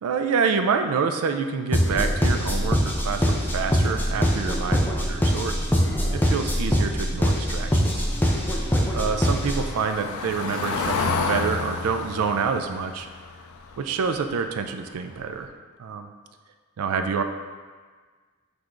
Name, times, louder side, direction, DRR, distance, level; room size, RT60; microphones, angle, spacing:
voice 1, 0.0-5.6 6.1-8.0 8.9-13.1 13.8-15.5 15.8-16.1 16.8-17.2, right 5 dB, 85° right, 7 dB, 0.4 m, -27 dB
sound 1, 1.7-9.7, equal, 10° left, 0.3 m, -23 dB
Car passing by / Engine, 7.6-14.6 14.9-15.2 15.4-15.5, left 4 dB, 80° left, 0.3 m, -31 dB
6.1 x 3.4 x 2.5 m, 1.5 s
head